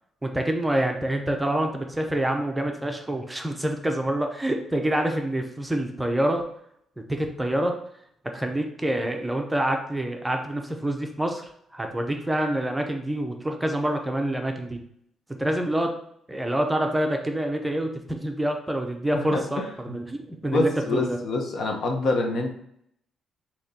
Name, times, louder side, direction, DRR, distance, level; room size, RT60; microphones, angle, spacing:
voice 1, 0.2-6.4 7.0-7.8 8.3-14.8 15.4-15.9 16.3-21.2, right 1 dB, 10° right, 3 dB, 0.7 m, -27 dB
voice 2, 19.3-19.7 20.5-22.5, left 2 dB, 60° left, 3 dB, 0.9 m, -25 dB
6.5 x 2.9 x 2.8 m, 0.70 s
cardioid pair, 90°, 0 cm